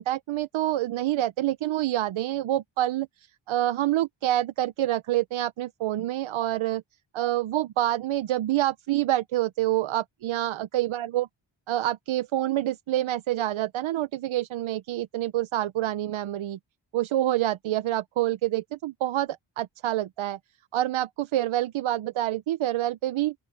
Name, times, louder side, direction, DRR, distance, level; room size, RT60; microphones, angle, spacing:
voice 1, 0.0-3.1 3.5-6.8 7.1-11.3 11.7-16.6 16.9-20.4 20.7-23.3, right 14 dB, 90° right, 0.7 m, -27 dB
open air
wide cardioid pair, 120°, 47 cm